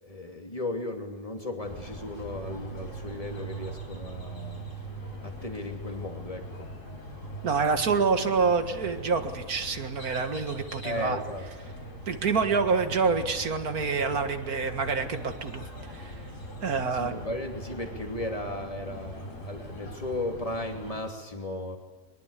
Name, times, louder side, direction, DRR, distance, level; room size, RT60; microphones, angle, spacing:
voice 1, 0.0-4.7 5.2-6.7 10.8-11.5 16.9-21.8, left 1 dB, 25° left, 3 dB, 2.8 m, -35 dB
sound 1, 1.6-21.0, right 1 dB, 60° left, 4.9 m, -41 dB
voice 2, 7.4-11.2 12.1-15.6 15.9-16.2 16.6-17.1, right 5 dB, 80° right, 7 dB, 2.2 m, -27 dB
22.5 x 21.5 x 8.4 m, 1.4 s
omnidirectional pair, 1.5 m